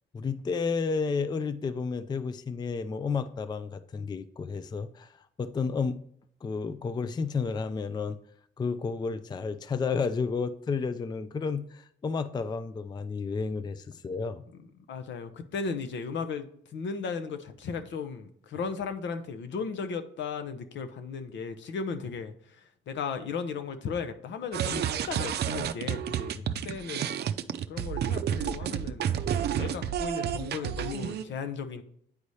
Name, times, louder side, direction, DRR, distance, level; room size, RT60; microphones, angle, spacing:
voice 1, 0.1-5.1 5.4-6.0 6.4-8.2 8.6-14.4, left 5 dB, 20° left, 0.4 m, -31 dB
voice 2, 14.9-26.3 26.6-27.1 27.7-29.1 29.6-31.8, left 5 dB, 70° left, 0.8 m, -36 dB
sound 1, 24.5-31.2, right 9 dB, 55° right, 0.5 m, -30 dB
9.6 x 4.1 x 3.2 m
cardioid pair, 90°, 20 cm